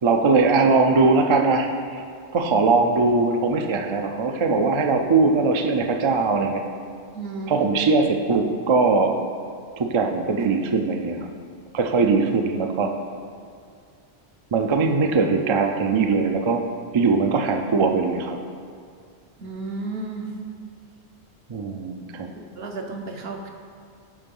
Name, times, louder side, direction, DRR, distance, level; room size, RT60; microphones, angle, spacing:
voice 1, 0.0-2.0 2.3-6.6 7.5-9.1 9.8-11.3 11.7-12.9 14.5-16.6 16.9-18.4 21.5-22.3, right 4 dB, 45° right, 4 dB, 0.4 m, -20 dB
voice 2, 7.1-7.7 19.4-20.3 22.6-23.5, right 3 dB, 60° right, 2 dB, 1.1 m, -33 dB
10.0 x 3.8 x 5.4 m, 2.2 s
omnidirectional pair, 1.2 m